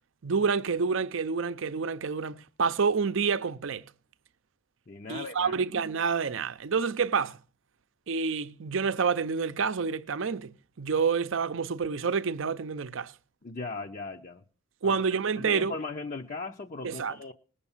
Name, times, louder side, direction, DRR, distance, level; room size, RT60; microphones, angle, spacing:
voice 1, 0.2-3.8 5.1-7.4 8.1-13.1 14.8-15.7 16.8-17.1, right 5 dB, 60° right, 0.6 m, -28 dB
voice 2, 4.9-5.6 13.4-14.4 14.8-15.0 15.4-17.3, left 3 dB, 40° left, 0.6 m, -38 dB
19.5 x 6.8 x 7.2 m
head